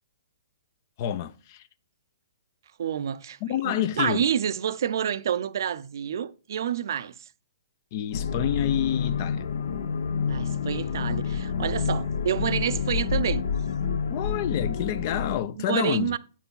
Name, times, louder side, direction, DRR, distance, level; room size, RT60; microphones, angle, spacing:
voice 1, 1.0-1.6 3.4-4.2 7.9-9.5 14.1-16.2, left 11 dB, 40° left, 0.6 m, -28 dB
voice 2, 2.8-3.4 3.6-7.3 10.3-13.5 15.6-16.2, right 9 dB, 65° right, 0.6 m, -28 dB
sound 1, 8.1-15.4, left 6 dB, 65° left, 1.0 m, -28 dB
8.8 x 4.6 x 5.4 m
hypercardioid pair, 145°, 2 cm